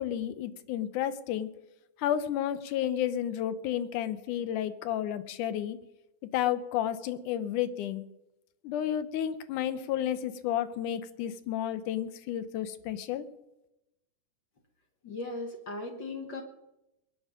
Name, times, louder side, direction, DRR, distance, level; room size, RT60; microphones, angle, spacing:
voice 1, 0.0-1.5 2.0-5.8 6.3-8.0 8.6-13.2, left 10 dB, 85° left, 12 dB, 2.4 m, -31 dB
voice 2, 15.0-16.4, left 2 dB, 50° left, 4 dB, 1.6 m, -37 dB
22.5 x 10.0 x 5.1 m, 0.92 s
omnidirectional pair, 3.5 m